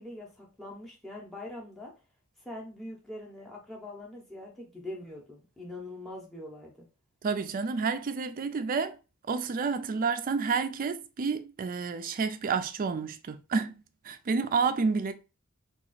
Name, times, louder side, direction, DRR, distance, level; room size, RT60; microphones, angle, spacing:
voice 1, 0.0-1.9 2.4-6.9, left 1 dB, ahead, 0.7 m, -43 dB
voice 2, 7.2-9.0 9.3-15.1, right 5 dB, 40° right, 0.3 m, -30 dB
2.9 x 2.4 x 3.9 m
head